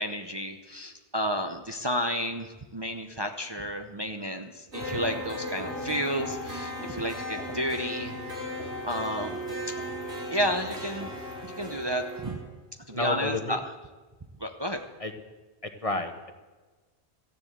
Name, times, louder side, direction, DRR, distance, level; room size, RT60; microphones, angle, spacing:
voice 1, 0.0-9.4 9.7-9.8 10.3-12.4 12.9-13.6 14.4-14.8, equal, 25° right, 5 dB, 0.7 m, -32 dB
sound 1, 4.7-12.3, equal, 85° right, 4.1 m, -36 dB
voice 2, 12.9-13.6 15.0-15.1 15.6-16.3, left 2 dB, 35° left, 7 dB, 1.0 m, -31 dB
14.0 x 10.5 x 8.0 m, 1.3 s
omnidirectional pair, 1.1 m